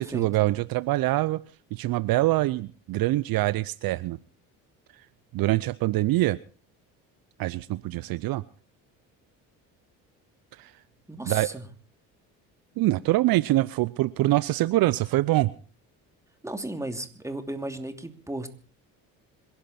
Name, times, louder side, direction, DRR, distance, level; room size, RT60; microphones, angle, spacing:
voice 1, 0.0-1.4 1.7-4.2 5.3-6.4 7.4-8.4 10.6-10.7 11.2-11.5 12.8-15.5, right 17 dB, 60° right, 17 dB, 0.7 m, -24 dB
voice 2, 11.1-11.6 16.4-18.5, right 1 dB, 5° right, 6 dB, 2.8 m, -34 dB
26.5 x 11.5 x 4.3 m, 0.38 s
supercardioid pair, 70°, 40 cm